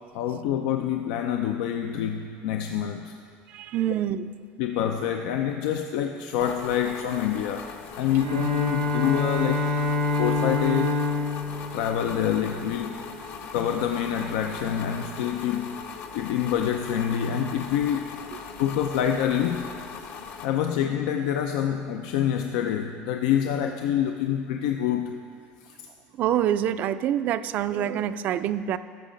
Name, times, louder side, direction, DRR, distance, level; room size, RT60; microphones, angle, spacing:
voice 1, 0.1-3.2 4.6-7.7 8.0-10.9 11.7-13.0 13.5-15.7 16.1-18.1 18.6-19.6 20.4-25.1, left 9 dB, 85° left, 5 dB, 0.5 m, -26 dB
voice 2, 3.5-4.3 26.2-28.8, right 10 dB, 45° right, 13 dB, 0.3 m, -26 dB
sound 1, 6.4-20.5, left 6 dB, 55° left, 0.8 m, -40 dB
Bowed string instrument, 8.1-13.0, left 3 dB, 90° right, 1.4 m, -27 dB
14.0 x 5.7 x 5.1 m, 2.3 s
cardioid pair, 135°, 4 cm